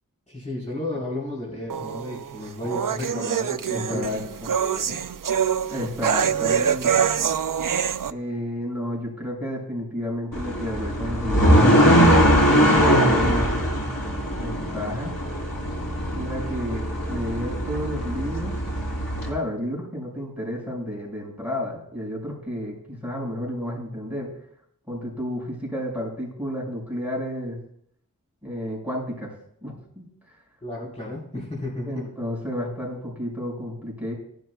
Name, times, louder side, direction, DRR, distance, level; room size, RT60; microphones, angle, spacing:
voice 1, 0.3-4.2 4.6-5.0 30.6-32.1, left 1 dB, 20° left, -8 dB, 4.3 m, -33 dB
sound 1, 1.7-8.1, right 8 dB, 70° right, 0.5 m, -25 dB
voice 2, 3.7-4.5 5.7-7.1 8.1-11.8 12.5-13.5 14.3-15.1 16.1-18.6 19.3-24.3 24.9-27.6 28.4-29.3 29.6-30.1 31.9-34.1, equal, 5° right, -3 dB, 5.6 m, -31 dB
sound 2, 10.3-19.3, equal, 75° left, 3.5 m, -21 dB
18.0 x 11.0 x 2.3 m, 0.69 s
wide cardioid pair, 55°, 34 cm